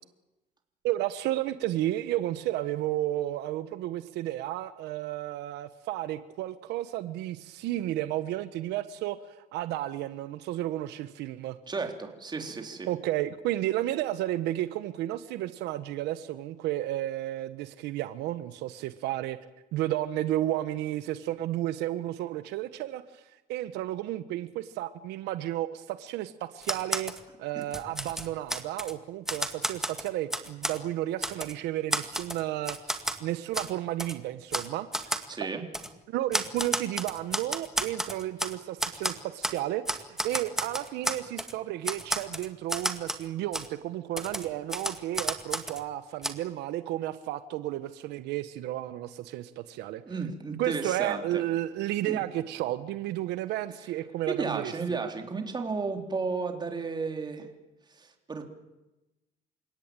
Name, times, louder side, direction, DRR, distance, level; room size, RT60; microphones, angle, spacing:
voice 1, 0.8-11.6 12.9-19.4 19.7-23.2 23.5-27.1 27.4-35.1 35.4-35.5 36.1-50.0 50.6-54.7, right 14 dB, 90° right, 12 dB, 1.2 m, -32 dB
voice 2, 11.7-12.9 27.6-27.7 35.3-35.7 50.1-51.4 52.0-52.2 54.3-57.5 57.9-58.4, right 4 dB, 25° right, 4 dB, 3.8 m, -33 dB
Typewriter, 26.6-27.2 27.6-28.9 29.3-30.8 31.2-31.5 31.9-33.2 33.5-33.7 34.0-34.1 34.5-34.7 34.9-35.3 35.7-35.9 36.3-38.5 38.8-39.6 39.9-41.5 41.8-43.3 43.5-43.7 44.2-45.8 46.2-46.3, right 1 dB, 5° right, 2.0 m, -32 dB
28.5 x 17.0 x 9.0 m, 1.0 s
cardioid pair, 110°, 17 cm